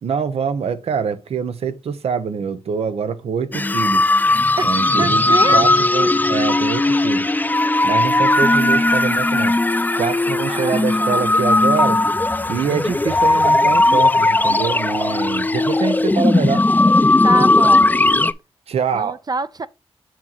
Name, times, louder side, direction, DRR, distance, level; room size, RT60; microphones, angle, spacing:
voice 1, 0.0-4.1 4.6-7.3 7.8-9.6 10.0-12.0 12.5-16.7 18.7-19.2, right 6 dB, 85° right, 0.7 m, -24 dB
sound 1, 3.5-18.3, left 2 dB, 15° left, 0.5 m, -17 dB
voice 2, 4.6-5.6 10.5-11.3 17.2-17.9 18.9-19.7, right 4 dB, 40° right, 0.5 m, -26 dB
7.3 x 3.0 x 5.4 m
cardioid pair, 55°, 10 cm